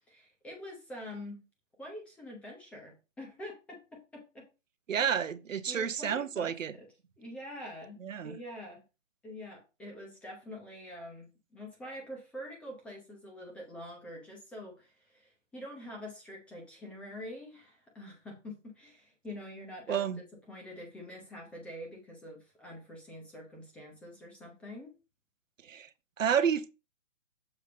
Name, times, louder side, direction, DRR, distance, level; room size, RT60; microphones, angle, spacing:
voice 1, 0.1-1.4 1.8-4.4 5.0-5.2 5.7-6.9 7.2-8.0 8.2-8.8 9.2-20.1 20.5-24.9, left 1 dB, 5° left, 0.8 m, -46 dB
voice 2, 4.9-6.8 8.0-8.4 19.9-20.2 25.6-25.9 26.2-26.7, right 8 dB, 85° right, 0.9 m, -30 dB
7.0 x 4.1 x 5.2 m
hypercardioid pair, 155°, 38 cm